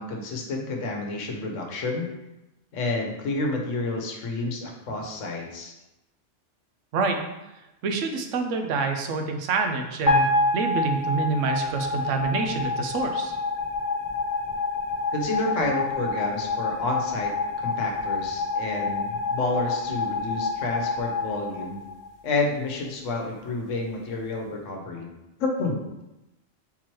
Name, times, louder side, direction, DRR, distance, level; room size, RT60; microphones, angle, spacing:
voice 1, 0.0-2.1 2.7-5.7 15.1-21.8 22.2-25.1 25.4-25.8, left 2 dB, 80° left, 2 dB, 1.1 m, -29 dB
voice 2, 7.8-10.3 10.5-13.4, right 4 dB, 80° right, 4 dB, 0.9 m, -27 dB
sound 1, 10.1-22.3, left 3 dB, 15° left, 1.2 m, -27 dB
3.8 x 3.0 x 4.4 m, 0.98 s
omnidirectional pair, 1.3 m